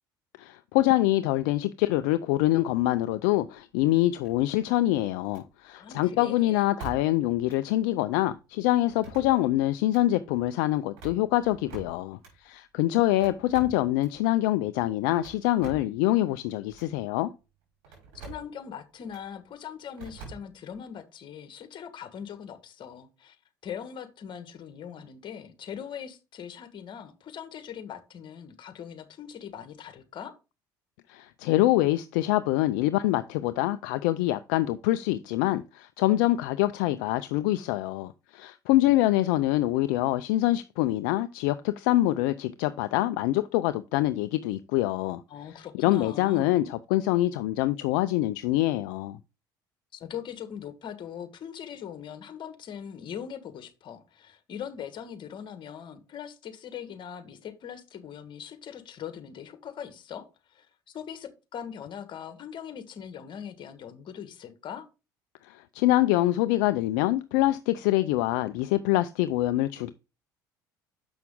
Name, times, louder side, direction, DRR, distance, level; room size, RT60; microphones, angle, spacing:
voice 1, 0.4-17.3 31.1-45.2 45.8-49.2 65.4-69.9, left 16 dB, 75° left, 0.4 m, -25 dB
sound 1, 4.2-4.8 5.3-5.5 6.8-7.2 7.5-7.6 8.9-9.5 9.8-10.0 10.8-12.3 13.2-14.2 15.1-16.0 16.7-16.9 17.8-18.5 19.1-19.3 20.0-20.8, right 5 dB, 70° right, 5.2 m, -45 dB
voice 2, 5.7-6.7 18.1-23.4 23.6-30.3 45.3-46.5 49.9-64.9, left 8 dB, 50° left, 1.5 m, -41 dB
7.0 x 5.9 x 3.7 m
hypercardioid pair, 65°, 10 cm